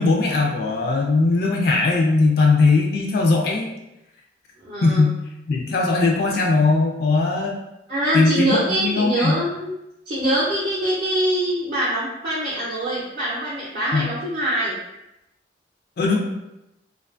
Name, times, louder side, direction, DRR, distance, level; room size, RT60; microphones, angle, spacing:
voice 1, 0.0-3.7 4.8-5.2 5.5-7.6 8.1-9.3 13.9-14.1 16.0-16.2, left 3 dB, 55° left, 0 dB, 0.3 m, -19 dB
voice 2, 4.6-5.1 7.9-9.7 10.1-14.7 16.1-16.2, right 1 dB, 40° right, -8 dB, 0.5 m, -24 dB
2.5 x 2.2 x 2.4 m, 0.89 s
head